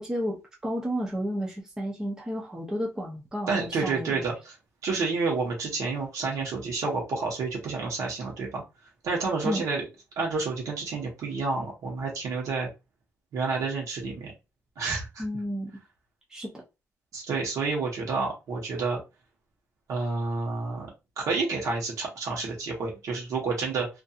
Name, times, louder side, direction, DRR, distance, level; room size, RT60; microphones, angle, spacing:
voice 1, 0.0-4.2 9.4-9.6 15.2-15.7 16.3-16.5, equal, 10° right, 0.6 m, -32 dB
voice 2, 3.5-4.5 4.8-8.6 9.0-9.8 10.2-12.7 13.3-14.3 14.8-15.2 17.1-19.0 19.9-20.9 21.2-23.9, right 4 dB, 85° right, 1.0 m, -29 dB
2.7 x 2.5 x 2.4 m
wide cardioid pair, 170°, 5 cm